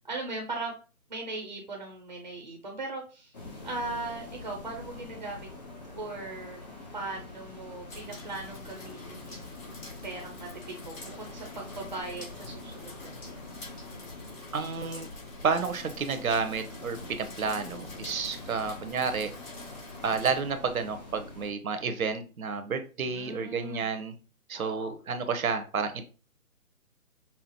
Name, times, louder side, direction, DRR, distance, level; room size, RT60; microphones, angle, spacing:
voice 1, 0.0-0.8 1.1-3.3 3.6-5.5 5.9-6.6 6.9-9.5 10.0-13.3 23.0-23.9 24.5-24.9, right 2 dB, 30° right, 0.5 m, -39 dB
sound 1, 3.3-21.5, left 2 dB, 30° left, 0.8 m, -45 dB
sound 2, 7.9-20.4, left 2 dB, 65° left, 2.0 m, -48 dB
voice 2, 14.5-15.1 15.4-19.3 20.0-24.1 24.5-26.0, right 5 dB, 70° right, 0.8 m, -30 dB
5.5 x 2.0 x 2.8 m
figure-of-eight pair, 150°, 44 cm